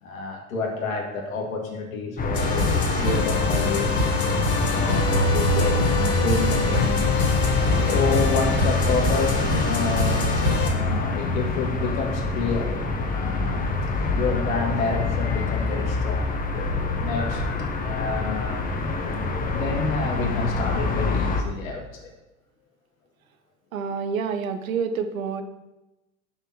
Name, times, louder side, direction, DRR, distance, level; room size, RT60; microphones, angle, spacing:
voice 1, 0.0-4.1 4.7-7.3 7.8-13.7 14.1-16.3 17.0-17.4 17.8-18.9 19.5-21.8, left 4 dB, 80° left, 1 dB, 2.0 m, -29 dB
sound 1, 2.2-21.4, left 3 dB, 20° left, 1.1 m, -26 dB
sound 2, 2.3-10.7, left 2 dB, 35° left, 2.2 m, -24 dB
voice 2, 23.7-25.4, right 6 dB, 80° right, 8 dB, 0.9 m, -28 dB
6.1 x 5.5 x 5.9 m, 0.99 s
hypercardioid pair, 90°, 40 cm